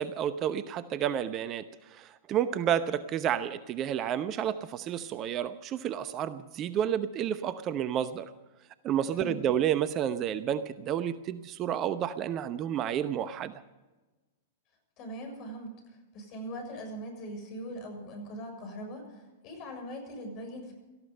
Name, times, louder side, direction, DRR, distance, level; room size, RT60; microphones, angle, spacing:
voice 1, 0.0-8.3 8.8-13.5, right 9 dB, 35° right, 13 dB, 0.8 m, -30 dB
voice 2, 15.0-15.7 16.1-20.7, equal, 40° left, 4 dB, 6.8 m, -41 dB
18.0 x 14.5 x 5.5 m, 1.1 s
figure-of-eight pair, 105°, 0 cm